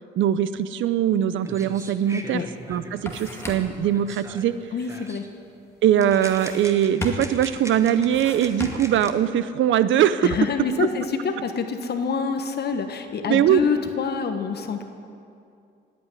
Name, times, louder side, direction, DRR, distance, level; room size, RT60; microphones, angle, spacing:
voice 1, 0.2-2.4 2.7-4.6 5.8-10.4 13.3-13.6, right 10 dB, 75° right, 14 dB, 0.7 m, -21 dB
sound 1, 1.1-1.2 1.4-4.6 4.9-5.3 6.0-9.1, right 1 dB, 15° right, 1.5 m, -41 dB
sound 2, 2.2-2.3 2.6-3.9 6.1-6.8 7.0-7.5 8.0-9.0, left 2 dB, 15° left, 2.2 m, -35 dB
voice 2, 4.7-5.3 10.2-14.8, left 5 dB, 55° left, 6 dB, 1.2 m, -26 dB
17.0 x 8.7 x 9.8 m, 2.5 s
cardioid pair, 90°, 20 cm